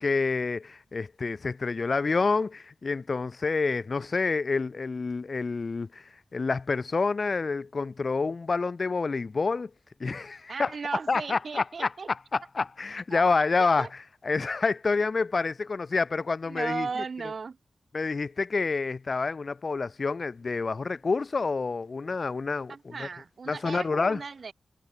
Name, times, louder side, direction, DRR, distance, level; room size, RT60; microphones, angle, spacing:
voice 1, 0.0-9.7 10.0-10.7 11.1-14.0 14.2-17.0 17.9-23.1 23.5-24.2, left 4 dB, 45° left, 1.6 m, -28 dB
voice 2, 10.5-12.1 13.1-13.2 13.6-13.9 16.5-17.6 22.7-24.5, right 5 dB, 55° right, 1.1 m, -36 dB
wide cardioid pair, 115°, 0 cm